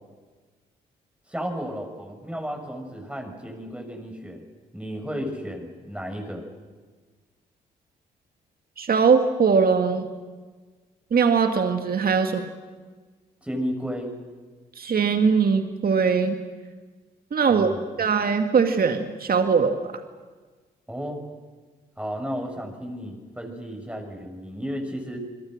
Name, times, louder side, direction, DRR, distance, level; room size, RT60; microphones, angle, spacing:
voice 1, 1.3-4.4 4.7-6.5 13.4-14.1 17.5-17.8 20.9-21.2 22.0-25.2, equal, 5° right, 3 dB, 7.0 m, -33 dB
voice 2, 8.8-10.1 11.1-12.5 14.8-16.4 17.3-17.7 18.0-19.9, right 5 dB, 50° right, 6 dB, 2.1 m, -21 dB
29.0 x 22.5 x 6.6 m, 1.4 s
hypercardioid pair, 45°, 20 cm